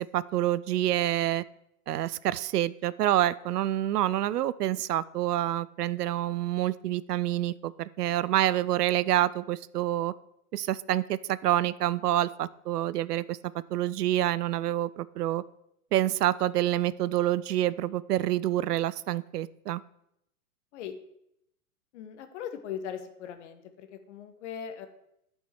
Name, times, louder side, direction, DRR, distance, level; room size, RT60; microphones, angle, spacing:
voice 1, 0.0-1.4 1.9-10.1 10.5-13.4 13.7-15.4 15.9-19.8, right 13 dB, 90° right, 18 dB, 0.5 m, -27 dB
voice 2, 21.9-24.9, left 8 dB, 50° left, 9 dB, 1.1 m, -39 dB
9.9 x 5.5 x 4.6 m, 0.78 s
hypercardioid pair, 130°, 45 cm